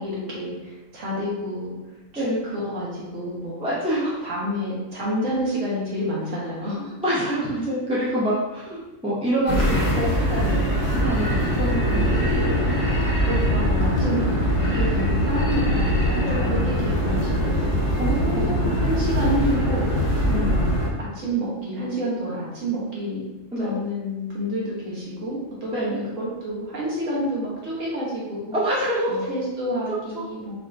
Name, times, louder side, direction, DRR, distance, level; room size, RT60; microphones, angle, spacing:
voice 1, 0.0-1.8 2.1-3.6 4.2-7.0 13.2-17.8 18.3-19.9 20.3-20.6 21.0-23.2 23.6-28.6 29.1-30.5, equal, 70° right, -6 dB, 1.6 m, -29 dB
voice 2, 3.6-4.2 7.0-10.7 11.0-12.1 14.6-14.7 16.2-16.5 18.0-18.7 20.3-20.4 23.5-23.8 25.7-26.0 28.5-29.2, right 1 dB, 10° right, -8 dB, 0.3 m, -26 dB
sound 1, 9.5-20.9, equal, 55° left, 1.1 m, -22 dB
4.8 x 2.8 x 2.5 m, 1.1 s
omnidirectional pair, 1.4 m